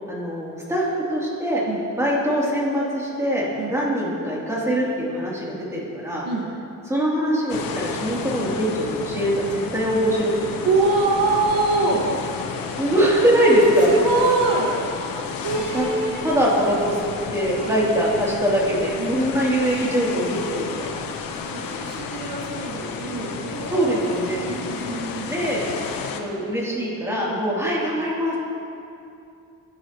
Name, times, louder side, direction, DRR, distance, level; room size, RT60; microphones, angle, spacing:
voice 1, 0.1-1.6 1.9-6.2 6.9-10.6 12.8-13.9 15.7-15.9 16.2-17.0 17.3-21.1 23.7-24.5 25.3-25.6 26.1-28.4, equal, 10° right, -6 dB, 3.0 m, -22 dB
sound 1, 7.5-26.2, left 5 dB, 85° left, 1.1 m, -32 dB
voice 2, 10.6-12.2 13.9-14.8 15.4-16.3 17.6-17.7 19.0-19.2 21.4-25.4 27.3-27.4, right 3 dB, 80° right, -1 dB, 1.8 m, -24 dB
20.0 x 11.0 x 3.0 m, 2.6 s
cardioid pair, 140°, 33 cm